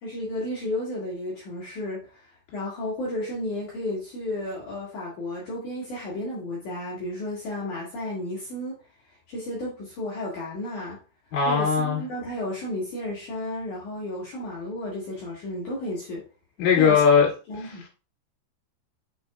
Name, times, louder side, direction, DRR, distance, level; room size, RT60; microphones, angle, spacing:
voice 1, 0.0-8.7 9.1-11.0 11.5-16.2 16.7-17.0 17.5-17.9, left 1 dB, 85° left, 1.7 m, -33 dB
voice 2, 11.3-12.0 16.6-17.3 17.6-17.9, left 6 dB, 55° left, 4.1 m, -20 dB
7.4 x 5.6 x 2.3 m
omnidirectional pair, 5.9 m